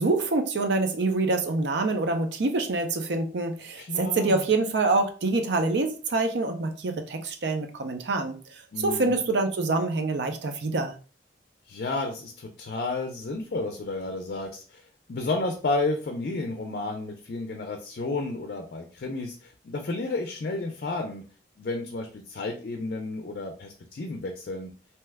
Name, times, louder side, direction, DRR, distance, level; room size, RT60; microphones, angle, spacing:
voice 1, 0.0-8.4 8.8-10.9, right 3 dB, 75° right, 6 dB, 0.5 m, -26 dB
voice 2, 3.7-4.5 8.7-9.2 11.7-14.8 15.1-21.2 21.6-24.7, left 2 dB, 55° left, 3 dB, 0.4 m, -32 dB
2.8 x 2.2 x 3.3 m, 0.38 s
head